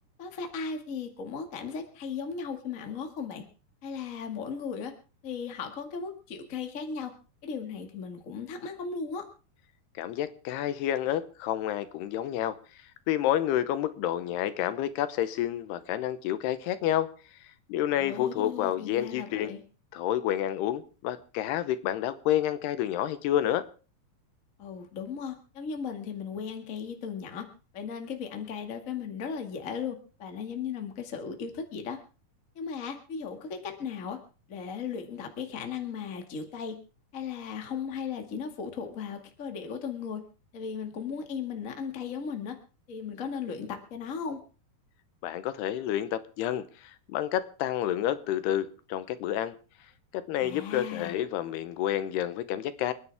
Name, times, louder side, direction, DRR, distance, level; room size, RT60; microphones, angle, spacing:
voice 1, 0.2-3.4 3.8-4.9 5.2-7.1 7.4-9.2 17.9-19.6 24.6-27.4 27.7-32.0 32.5-34.2 34.5-36.7 37.1-40.2 40.5-42.5 42.9-44.4 50.4-51.1, left 6 dB, 30° left, 4 dB, 1.4 m, -36 dB
voice 2, 10.0-12.6 13.1-17.1 17.7-19.5 19.9-23.6 45.2-49.5 50.1-52.9, left 11 dB, 80° left, 12 dB, 2.9 m, -29 dB
29.0 x 9.8 x 3.5 m, 0.35 s
omnidirectional pair, 4.7 m